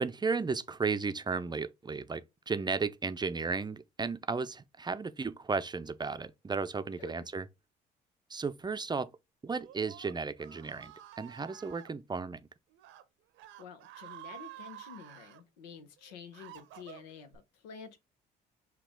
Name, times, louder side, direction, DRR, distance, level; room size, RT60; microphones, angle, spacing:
voice 1, 0.0-7.5 8.3-9.1 9.4-12.4, right 4 dB, 20° right, 0.5 m, -34 dB
voice 2, 7.0-7.3 13.6-18.0, left 6 dB, 90° left, 0.9 m, -49 dB
Screaming, 9.5-11.9 12.7-13.0 13.3-15.4 16.0-17.4, right 13 dB, 70° right, 0.7 m, -50 dB
5.9 x 2.4 x 3.6 m
hypercardioid pair, 65°, 21 cm